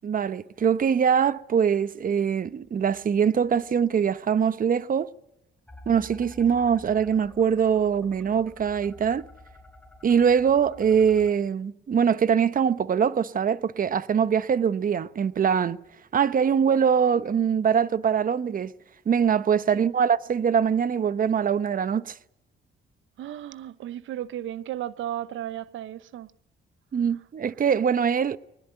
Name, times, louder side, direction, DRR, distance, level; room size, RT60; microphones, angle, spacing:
voice 1, 0.0-5.1 5.9-9.2 10.0-15.8 16.1-18.7 19.1-22.1 26.9-28.4, right 7 dB, 45° right, 1.0 m, -23 dB
sound 1, 5.7-11.3, left 1 dB, 5° left, 4.2 m, -48 dB
voice 2, 23.2-26.3, right 12 dB, 75° right, 0.9 m, -34 dB
21.5 x 20.0 x 9.1 m
cardioid pair, 90°, 20 cm